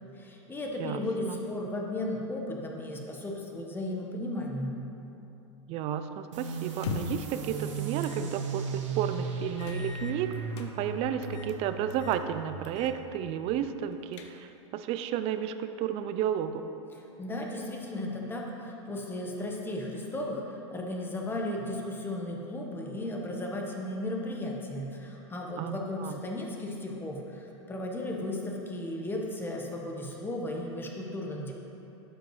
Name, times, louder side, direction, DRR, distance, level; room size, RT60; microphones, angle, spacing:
voice 1, 0.2-4.8 17.2-31.5, left 1 dB, 15° left, 0 dB, 1.1 m, -35 dB
voice 2, 0.8-1.4 5.7-10.3 10.6-16.7 25.6-26.2, right 9 dB, 40° right, 10 dB, 0.4 m, -32 dB
sound 1, 6.3-13.6, right 4 dB, 85° right, 1.1 m, -36 dB
sound 2, 6.7-7.3 8.0-8.2 8.6-8.7 9.6-10.7 11.2-11.6 11.9-12.2 12.6-13.0 13.3-13.4 13.9-14.6, left 6 dB, 70° left, 0.7 m, -41 dB
12.0 x 5.1 x 3.1 m, 2.9 s
hypercardioid pair, 115°, 16 cm